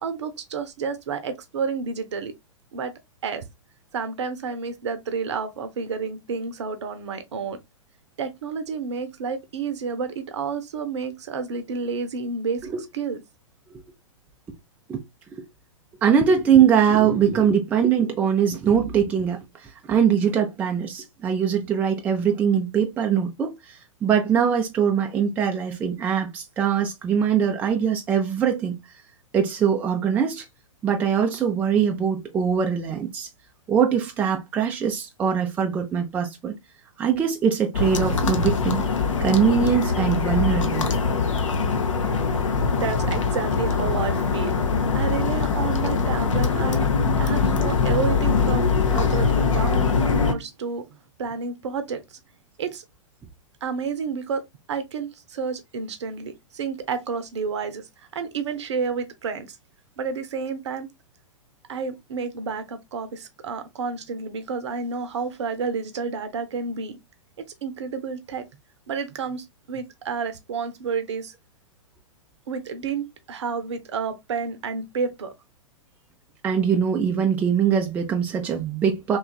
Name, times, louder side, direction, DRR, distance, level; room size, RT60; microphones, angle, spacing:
voice 1, 0.0-2.3 2.7-2.9 3.2-3.4 3.9-7.6 8.2-13.2 42.7-44.6 44.9-46.9 47.2-50.8 51.2-52.2 52.6-52.8 53.6-54.4 54.7-57.9 58.1-59.6 60.0-60.9 61.7-67.0 67.4-68.5 68.9-71.3 72.5-75.3, right 5 dB, 55° right, 0.6 m, -30 dB
voice 2, 16.0-23.5 24.0-28.8 29.3-30.4 30.8-33.3 33.7-36.5 37.0-38.8 39.2-40.9 76.4-79.2, right 7 dB, 10° right, 0.3 m, -22 dB
sound 1, 37.7-50.3, left 5 dB, 65° left, 0.6 m, -22 dB
3.0 x 2.3 x 2.2 m
figure-of-eight pair, 105°, 17 cm